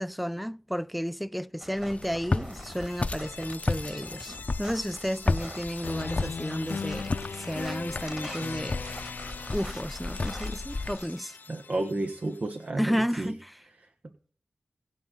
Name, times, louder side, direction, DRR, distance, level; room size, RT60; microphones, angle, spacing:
voice 1, 0.0-7.1 7.4-9.1 9.5-11.4 12.8-13.6, equal, ahead, 0.5 m, -32 dB
sound 1, 1.6-11.1, right 1 dB, 20° right, 2.2 m, -45 dB
Walk footsteps, 1.8-11.0, left 3 dB, 45° left, 0.8 m, -33 dB
sound 2, 2.4-12.4, left 5 dB, 75° left, 0.5 m, -40 dB
voice 2, 11.5-13.3, right 2 dB, 55° right, 1.1 m, -31 dB
19.0 x 6.7 x 3.9 m
cardioid pair, 45°, 3 cm